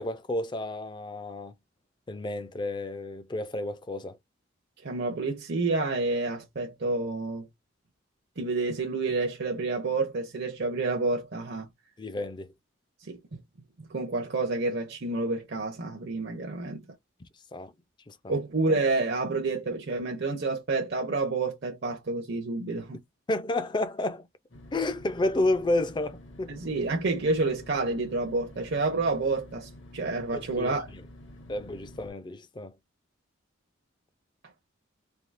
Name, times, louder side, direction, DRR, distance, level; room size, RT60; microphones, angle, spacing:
voice 1, 0.0-1.5 2.1-4.2 12.0-12.5 17.2-17.7 18.1-18.4 23.3-24.3 24.7-26.6 30.3-31.0 31.5-32.7, left 2 dB, 25° left, 0.4 m, -31 dB
voice 2, 4.8-7.5 8.4-11.7 13.0-13.2 13.8-16.8 18.3-23.0 26.5-30.9, right 3 dB, 55° right, 0.6 m, -29 dB
sound 1, 24.5-32.1, left 1 dB, 70° left, 1.1 m, -49 dB
3.4 x 2.7 x 2.5 m
head